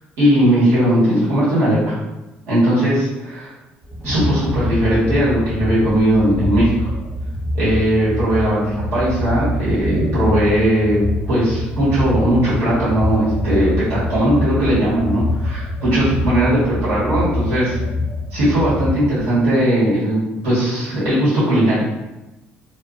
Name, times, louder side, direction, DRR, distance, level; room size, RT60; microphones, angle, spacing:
voice 1, 0.2-2.0 2.5-3.5 4.0-6.9 7.5-11.0 11.3-17.8 18.3-21.8, right 1 dB, 80° right, -11 dB, 1.4 m, -18 dB
sound 1, 3.8-19.5, left 1 dB, 20° right, 0.9 m, -25 dB
2.5 x 2.4 x 2.5 m, 1.0 s
cardioid pair, 115°, 4 cm